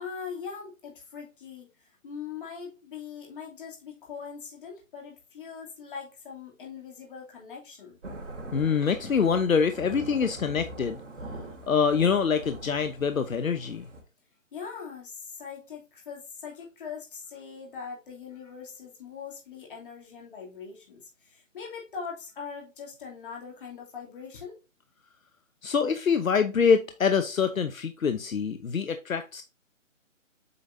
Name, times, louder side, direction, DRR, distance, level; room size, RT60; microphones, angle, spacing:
voice 1, 0.0-8.0 14.5-24.6, left 6 dB, 40° left, 2.9 m, -41 dB
Thunder / Rain, 8.0-14.0, right 2 dB, 60° right, 2.8 m, -42 dB
voice 2, 8.5-11.0 11.7-13.9 25.6-29.4, left 6 dB, 80° left, 0.9 m, -25 dB
8.0 x 5.2 x 2.7 m
figure-of-eight pair, 155°, 40 cm